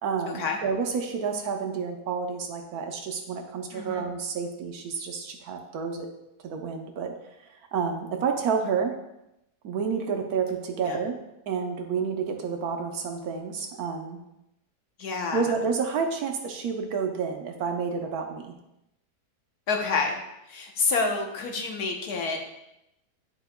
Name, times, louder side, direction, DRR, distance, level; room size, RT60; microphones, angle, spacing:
voice 1, 0.0-6.1 6.4-7.2 7.7-8.9 9.6-11.2 11.5-14.2 15.3-18.5, right 5 dB, 70° right, 4 dB, 1.2 m, -29 dB
voice 2, 3.7-4.0 10.9-11.0 15.0-15.4 19.7-20.1 20.5-22.5, left 4 dB, 70° left, 2 dB, 1.4 m, -28 dB
10.0 x 4.6 x 2.2 m, 0.87 s
omnidirectional pair, 1.7 m